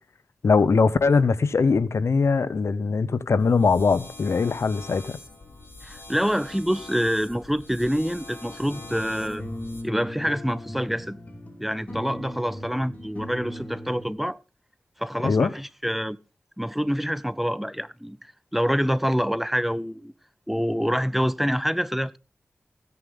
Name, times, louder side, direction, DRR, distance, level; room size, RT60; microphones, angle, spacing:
voice 1, 0.4-5.2 15.2-15.5, left 4 dB, 80° left, 0.9 m, -21 dB
sound 1, 3.4-9.8, left 2 dB, 65° left, 5.9 m, -44 dB
voice 2, 5.8-9.4 9.8-11.2 11.6-14.4 15.0-16.2 16.6-18.2 18.5-20.1 20.5-22.2, equal, 5° right, 0.7 m, -26 dB
sound 2, 8.7-14.1, left 1 dB, 30° left, 5.5 m, -38 dB
16.0 x 9.6 x 3.7 m
wide cardioid pair, 65°, 5 cm